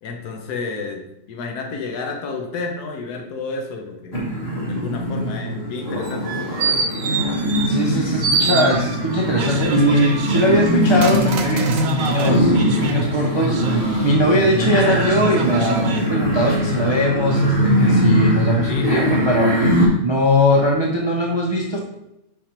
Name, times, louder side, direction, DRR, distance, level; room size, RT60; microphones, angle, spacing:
voice 1, 0.0-4.2 4.7-6.8 18.7-19.2, left 4 dB, 65° left, 3 dB, 1.4 m, -31 dB
sound 1, 4.1-19.9, equal, 35° left, 1.8 m, -21 dB
sound 2, 6.0-7.9 8.2-9.2 9.8-12.4 12.9-13.0, right 5 dB, 60° right, 1.0 m, -26 dB
voice 2, 7.7-19.6 20.0-21.8, equal, 30° right, -2 dB, 0.4 m, -20 dB
sound 3, 9.1-16.2, right 4 dB, 75° right, 1.4 m, -29 dB
5.2 x 4.8 x 4.4 m, 0.83 s
omnidirectional pair, 1.9 m